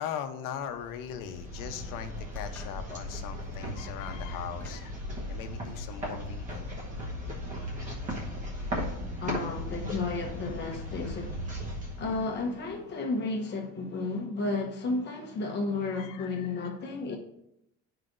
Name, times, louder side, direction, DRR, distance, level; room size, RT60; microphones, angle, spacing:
voice 1, 0.0-4.9 5.3-6.7 15.9-16.9, left 9 dB, 85° left, 0.9 m, -39 dB
sound 1, 0.7-12.8, equal, 25° right, 1.1 m, -37 dB
sound 2, 2.3-2.8 3.8-4.0 4.6-4.9, left 2 dB, 5° left, 1.3 m, -53 dB
voice 2, 9.2-11.5 12.0-17.2, left 3 dB, 35° left, 1.0 m, -32 dB
11.0 x 4.9 x 2.6 m
cardioid pair, 175°, 31 cm